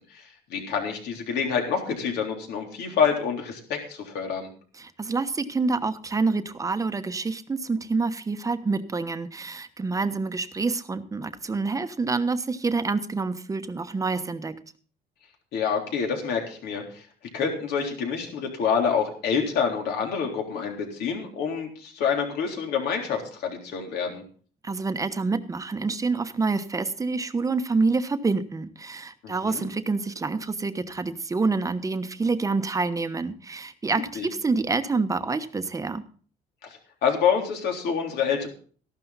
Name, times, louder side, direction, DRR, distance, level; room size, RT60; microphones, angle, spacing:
voice 1, 0.5-4.5 15.5-17.0 17.3-24.2 29.2-29.7 34.2-34.3 37.0-38.5, left 6 dB, 75° left, 1 dB, 3.6 m, -27 dB
voice 2, 4.8-14.5 24.6-36.0, right 3 dB, 20° right, 10 dB, 1.1 m, -27 dB
14.0 x 12.0 x 4.1 m, 0.43 s
cardioid pair, 110°, 17 cm